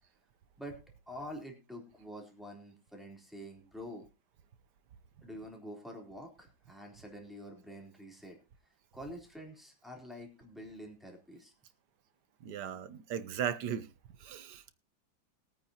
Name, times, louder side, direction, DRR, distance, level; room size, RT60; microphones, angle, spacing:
voice 1, 1.1-4.0 5.2-8.4 8.9-11.5, equal, ahead, 3.5 m, -47 dB
voice 2, 12.4-13.9 14.2-14.7, right 9 dB, 65° right, 1.4 m, -37 dB
21.0 x 9.0 x 2.9 m
omnidirectional pair, 2.2 m